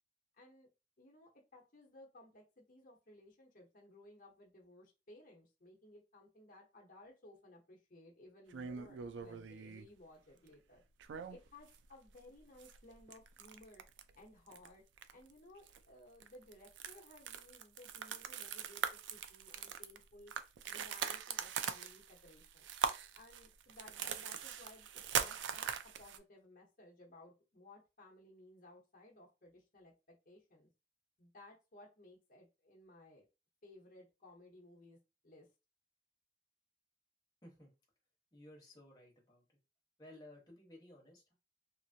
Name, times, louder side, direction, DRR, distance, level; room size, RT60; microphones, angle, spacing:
voice 1, 0.3-0.7 1.0-10.8 11.3-13.8 14.1-14.8 15.1-20.3 20.6-22.7 23.1-25.7 26.0-30.7 31.2-33.3 33.6-35.0 35.2-35.5, left 1 dB, 50° left, -2 dB, 0.8 m, -59 dB
sound 1, 8.5-9.9 11.0-11.8 12.1-12.2 12.6-14.1 14.5-14.7 15.0-15.3 15.7-15.8 16.2-26.2, right 7 dB, 90° right, 0.3 m, -41 dB
voice 2, 38.3-39.4 40.0-41.4, left 1 dB, 20° left, -2 dB, 1.1 m, -57 dB
2.8 x 2.5 x 2.6 m, 0.27 s
head